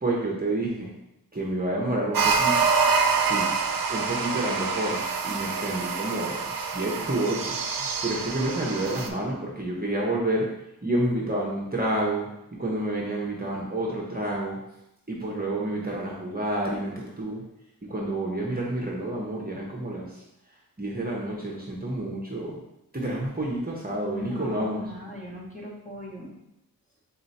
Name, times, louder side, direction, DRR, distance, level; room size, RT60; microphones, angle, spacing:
voice 1, 0.0-0.9 1.3-2.7 3.2-3.5 3.9-10.5 10.8-14.6 15.1-17.4 17.9-20.2 20.8-22.6 22.9-24.9, right 1 dB, 25° right, -3 dB, 0.9 m, -29 dB
sound 1, 2.1-9.1, right 5 dB, 65° right, 0.5 m, -26 dB
voice 2, 23.9-26.3, left 1 dB, 20° left, -4 dB, 1.3 m, -38 dB
3.8 x 3.0 x 4.1 m, 0.86 s
wide cardioid pair, 55°, 37 cm